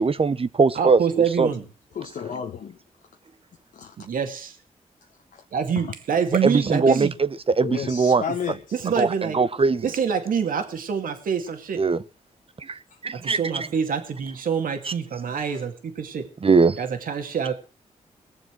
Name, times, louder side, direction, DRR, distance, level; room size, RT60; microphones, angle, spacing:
voice 1, 0.0-1.0 1.4-1.5 6.4-7.1 7.5-8.2 9.0-9.8 11.8-12.0 12.6-13.7 14.8-14.9 16.4-16.8, right 4 dB, 40° right, 1.0 m, -20 dB
voice 2, 0.7-1.6 4.0-4.6 5.5-7.1 8.7-9.4 9.8-11.8 13.1-16.3 16.8-17.5, right 7 dB, 75° right, 2.3 m, -26 dB
voice 3, 1.9-2.8 3.7-4.0 5.3-5.4 5.8-5.9 7.6-8.8 12.9-13.0 15.4-15.6, left 7 dB, 75° left, 1.3 m, -32 dB
20.0 x 7.2 x 6.3 m
cardioid pair, 50°, 14 cm